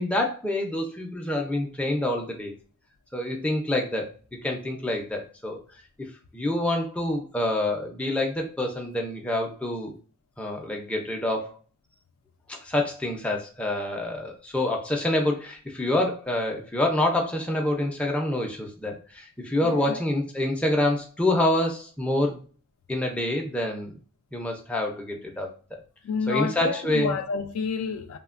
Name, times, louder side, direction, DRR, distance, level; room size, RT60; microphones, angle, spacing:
voice 1, 0.0-2.5 3.1-4.1 4.4-5.6 6.3-9.9 10.4-11.5 12.5-22.4 22.9-23.9 24.3-25.5 26.3-27.2, left 1 dB, 5° left, 0.4 m, -27 dB
voice 2, 19.6-20.0 26.0-28.2, left 5 dB, 70° left, 0.3 m, -29 dB
3.1 x 2.1 x 2.4 m
head